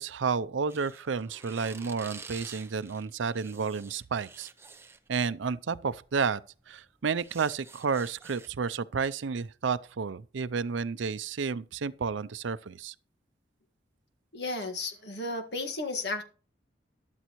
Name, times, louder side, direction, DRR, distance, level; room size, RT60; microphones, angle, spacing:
voice 1, 0.0-4.5 5.1-6.4 6.7-12.9, right 5 dB, 85° right, 0.5 m, -31 dB
sound 1, 0.7-5.1 6.1-6.3 6.6-8.5, right 4 dB, 15° right, 0.7 m, -49 dB
voice 2, 14.3-16.2, left 2 dB, 65° left, 1.7 m, -33 dB
12.5 x 11.5 x 3.0 m
head